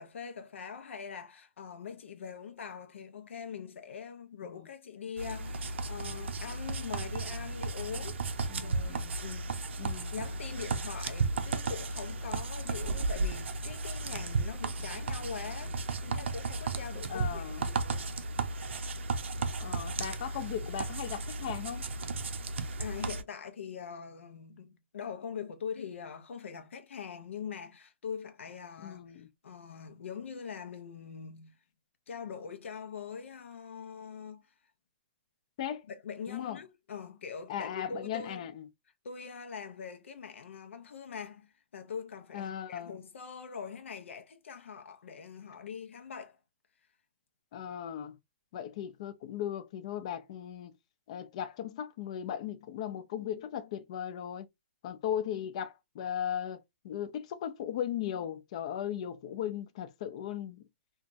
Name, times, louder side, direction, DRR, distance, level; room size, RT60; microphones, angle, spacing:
voice 1, 0.0-9.6 10.1-18.1 22.8-31.6 32.1-34.5 35.9-38.4 39.0-46.4, left 6 dB, 85° left, 0.6 m, -43 dB
sound 1, 5.2-23.2, right 3 dB, 70° right, 0.5 m, -34 dB
voice 2, 8.5-9.1 9.8-10.1 17.1-17.6 19.6-21.9 28.8-29.3 35.6-35.9 36.3-36.6 37.5-38.7 42.3-43.0 47.5-48.2 48.5-50.7 51.1-54.5 54.8-60.6, left 10 dB, 30° left, 0.4 m, -37 dB
2.9 x 2.3 x 2.5 m
hypercardioid pair, 170°, 7 cm